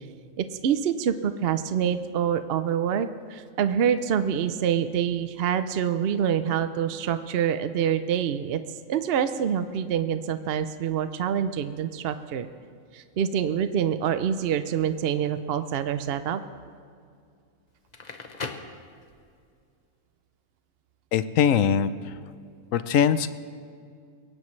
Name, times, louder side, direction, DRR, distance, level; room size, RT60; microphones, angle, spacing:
voice 1, 0.4-8.6 8.9-12.5 12.9-16.4, right 8 dB, 60° right, 10 dB, 0.7 m, -26 dB
Crackle, 17.7-19.5, left 4 dB, 35° left, 0.9 m, -38 dB
voice 2, 21.1-22.1 22.7-23.3, left 8 dB, 75° left, 13 dB, 1.0 m, -22 dB
22.5 x 17.5 x 3.2 m, 2.2 s
omnidirectional pair, 1.4 m